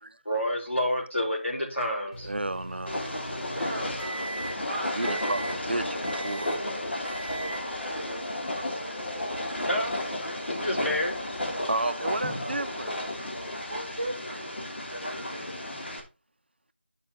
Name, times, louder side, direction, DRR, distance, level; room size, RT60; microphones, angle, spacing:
voice 1, 0.3-2.3 9.6-10.0 10.5-11.3 12.2-12.3, left 1 dB, 90° left, 3.5 m, -29 dB
Microwave oven, 2.1-4.7 5.0-5.6 6.0-6.6 7.0-7.7, right 2 dB, 35° left, 2.6 m, -40 dB
voice 2, 2.2-3.2 4.9-6.5 11.7-12.9, right 2 dB, 60° right, 0.6 m, -32 dB
Train, 2.9-16.0, left 1 dB, 65° left, 2.6 m, -33 dB
voice 3, 3.6-5.1 13.7-14.5, right 1 dB, 5° left, 0.4 m, -37 dB
10.5 x 5.5 x 3.0 m
figure-of-eight pair, 175°, 6 cm